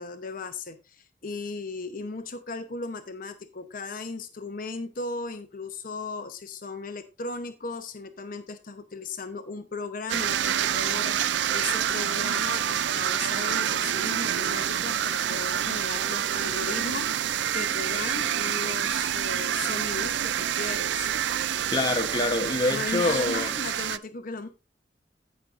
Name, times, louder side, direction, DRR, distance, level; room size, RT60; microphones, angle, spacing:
voice 1, 0.0-21.1 22.7-24.5, left 3 dB, 50° left, 0.8 m, -36 dB
sound 1, 10.1-24.0, right 10 dB, 85° right, 0.4 m, -27 dB
voice 2, 21.7-23.5, left 2 dB, 25° left, 1.0 m, -26 dB
16.5 x 6.2 x 2.5 m
head